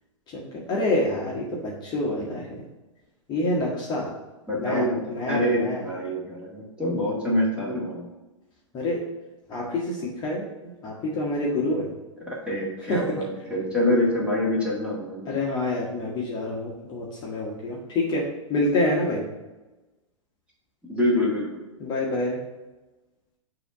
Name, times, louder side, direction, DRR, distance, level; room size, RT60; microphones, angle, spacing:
voice 1, 0.3-2.6 3.3-4.1 4.6-5.8 8.7-9.0 9.5-11.9 12.9-13.2 15.3-18.2 18.5-19.2 21.8-22.4, left 2 dB, 25° left, -3 dB, 1.2 m, -27 dB
voice 2, 4.5-5.0 5.3-8.1 12.3-15.3 20.9-21.5, left 1 dB, 5° right, -5 dB, 1.9 m, -25 dB
6.8 x 2.9 x 5.5 m, 1.1 s
figure-of-eight pair, 105°, 17 cm